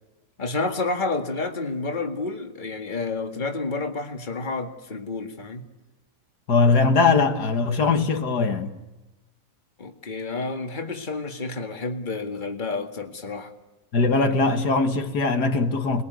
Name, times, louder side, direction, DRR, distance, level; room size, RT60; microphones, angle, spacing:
voice 1, 0.4-5.7 9.8-13.5, left 3 dB, 30° left, 2.1 m, -30 dB
voice 2, 6.5-8.7 13.9-16.0, left 4 dB, 80° left, 2.1 m, -21 dB
28.0 x 21.5 x 9.4 m
omnidirectional pair, 1.7 m